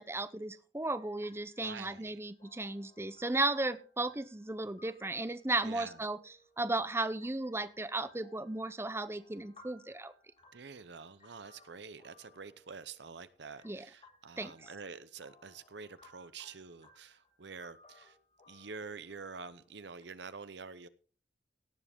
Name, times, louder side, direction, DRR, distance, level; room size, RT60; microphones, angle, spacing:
voice 1, 0.0-6.2 6.6-10.1 13.6-13.8 14.4-14.5, right 2 dB, 15° right, 0.6 m, -35 dB
sound 1, 0.8-20.0, left 3 dB, 35° left, 2.7 m, -63 dB
voice 2, 1.6-2.2 5.6-6.0 10.5-18.2 18.5-20.9, right 5 dB, 65° right, 0.8 m, -47 dB
18.0 x 7.4 x 3.6 m
head